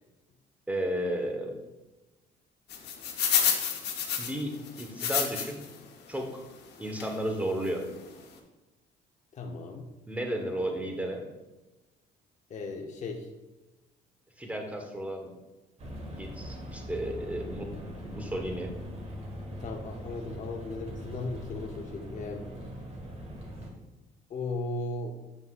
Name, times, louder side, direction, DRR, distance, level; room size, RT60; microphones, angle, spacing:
voice 1, 0.7-1.5 4.2-5.6 6.1-6.3 6.8-7.8 10.1-11.2 14.4-15.3 16.2-17.7 18.0-18.7, right 1 dB, 10° right, 3 dB, 1.2 m, -33 dB
sound 1, 2.7-5.7 6.1-6.2 7.0-7.2 7.6-7.7 7.9-8.1, left 7 dB, 70° left, 1.0 m, -29 dB
voice 2, 9.3-9.9 12.5-13.3 19.6-22.4 24.3-25.1, left 2 dB, 45° left, 1 dB, 0.7 m, -36 dB
sound 2, 15.8-23.7, equal, 35° right, 1.5 m, -41 dB
7.9 x 5.4 x 2.4 m, 1.1 s
supercardioid pair, 85°, 18 cm